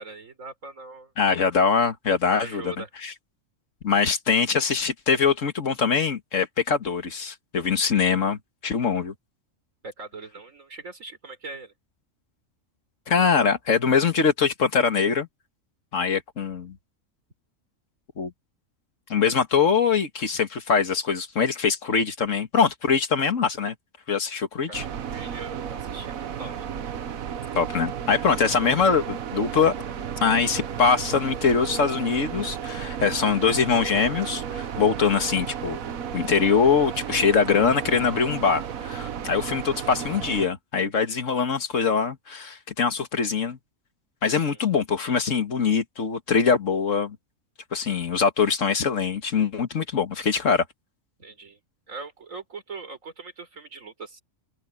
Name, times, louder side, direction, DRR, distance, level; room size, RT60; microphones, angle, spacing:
voice 1, 0.0-1.1 2.3-2.9 9.8-11.7 24.7-26.7 44.4-44.6 51.2-51.6 51.9-54.2, right 3 dB, 70° right, 4.2 m, -41 dB
voice 2, 1.2-2.7 3.0-3.1 3.8-8.4 8.6-9.1 13.1-15.3 15.9-16.8 18.2-18.3 19.1-23.7 24.1-24.8 27.6-29.7 30.2-35.8 36.1-43.6 44.2-47.2 47.7-50.6, left 5 dB, 65° left, 2.0 m, -23 dB
sound 1, 24.7-40.5, right 8 dB, 90° right, 1.5 m, -33 dB
open air
omnidirectional pair, 1.4 m